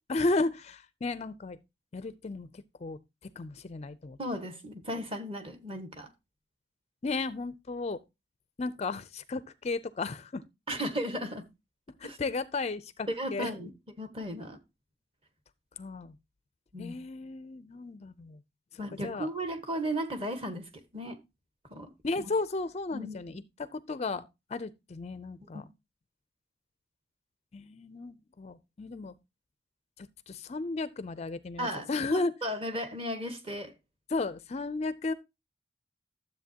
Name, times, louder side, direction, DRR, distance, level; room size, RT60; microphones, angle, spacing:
voice 1, 0.1-1.6 1.9-2.5 2.8-3.0 3.4-4.2 7.0-8.0 8.6-10.4 12.0-13.5 15.8-16.1 16.8-18.4 18.7-19.3 22.0-25.7 27.5-29.1 30.0-32.3 34.1-35.1, left 3 dB, 35° left, 0.4 m, -34 dB
voice 2, 4.2-6.1 10.7-11.4 12.0-12.2 13.1-13.7 14.0-14.6 16.7-17.0 18.8-20.6 20.9-21.2 21.7-21.9 22.2-22.3 22.9-23.2 31.6-33.7, equal, 30° right, 1.4 m, -35 dB
12.5 x 7.7 x 2.8 m
head